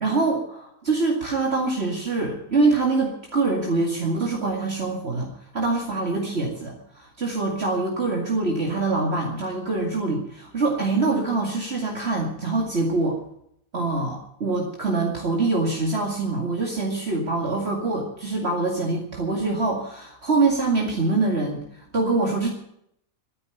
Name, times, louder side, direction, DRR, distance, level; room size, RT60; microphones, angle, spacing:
voice 1, 0.0-13.2 13.7-22.5, right 3 dB, 50° right, -1 dB, 2.4 m, -24 dB
13.0 x 11.0 x 9.2 m, 0.72 s
omnidirectional pair, 1.4 m